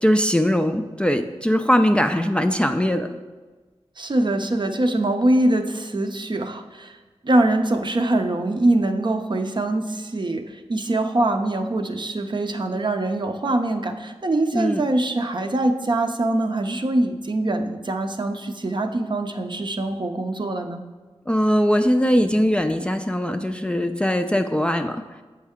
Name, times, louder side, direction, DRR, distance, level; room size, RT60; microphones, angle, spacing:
voice 1, 0.0-3.1 14.5-14.8 21.3-25.0, equal, 10° left, 6 dB, 0.3 m, -20 dB
voice 2, 4.0-6.9 7.2-20.8, right 2 dB, 45° right, 5 dB, 0.5 m, -23 dB
7.3 x 4.4 x 3.6 m, 1.3 s
cardioid pair, 50°, 11 cm